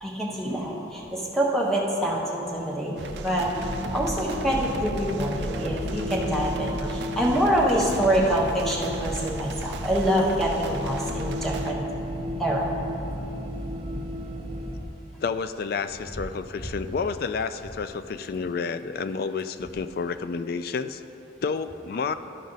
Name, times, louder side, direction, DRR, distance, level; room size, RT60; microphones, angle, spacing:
voice 1, 0.0-3.5 3.9-11.8 12.4-12.7, right 1 dB, ahead, -4 dB, 1.1 m, -25 dB
sound 1, 3.0-11.7, right 3 dB, 65° right, 0.4 m, -37 dB
sound 2, 3.5-14.8, left 1 dB, 30° right, 0.7 m, -33 dB
voice 2, 15.2-21.0 21.4-22.1, left 5 dB, 50° left, 11 dB, 0.3 m, -30 dB
13.5 x 5.2 x 4.0 m, 2.9 s
head